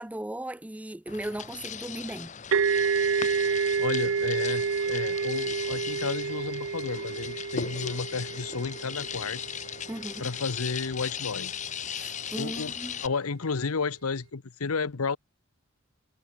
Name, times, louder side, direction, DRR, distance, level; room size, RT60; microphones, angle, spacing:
voice 1, 0.0-2.3 9.9-10.3 11.9-13.0, right 1 dB, 5° right, 0.4 m, -37 dB
sound 1, 1.1-13.1, left 8 dB, 35° left, 1.1 m, -38 dB
sound 2, 2.5-10.0, right 5 dB, 60° right, 0.5 m, -29 dB
voice 2, 3.5-9.4 10.2-11.6 12.4-12.7 13.0-15.2, left 4 dB, 85° left, 0.9 m, -32 dB
head